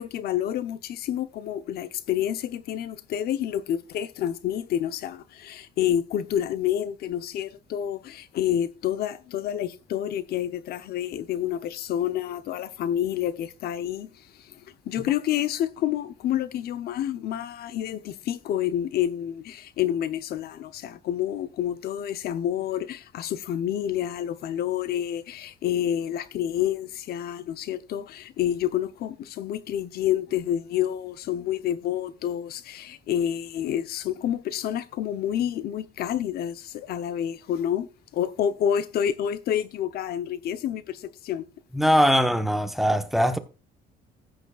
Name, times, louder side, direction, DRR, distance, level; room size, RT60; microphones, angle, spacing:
voice 1, 0.0-14.6 14.9-41.4, left 10 dB, 70° left, 0.8 m, -28 dB
voice 2, 41.7-43.4, equal, ahead, 1.0 m, -21 dB
14.5 x 9.0 x 2.4 m
cardioid pair, 110°, 17 cm